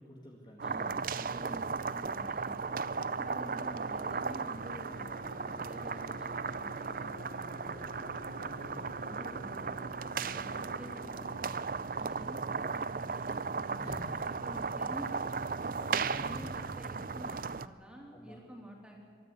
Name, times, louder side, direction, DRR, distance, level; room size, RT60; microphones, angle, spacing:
voice 1, 0.0-1.0 8.0-8.9 12.2-12.5 13.8-14.2 15.7-16.5 18.1-18.4, equal, 25° left, -1 dB, 2.0 m, -48 dB
voice 2, 0.6-2.7 3.1-8.0 8.5-11.5 12.0-15.3 15.8-19.0, equal, 5° right, -1 dB, 3.5 m, -49 dB
sound 1, 0.6-17.7, right 5 dB, 50° right, 0.5 m, -36 dB
sound 2, 2.7-11.4, left 3 dB, 70° left, 2.8 m, -51 dB
23.5 x 13.5 x 8.3 m, 2.3 s
head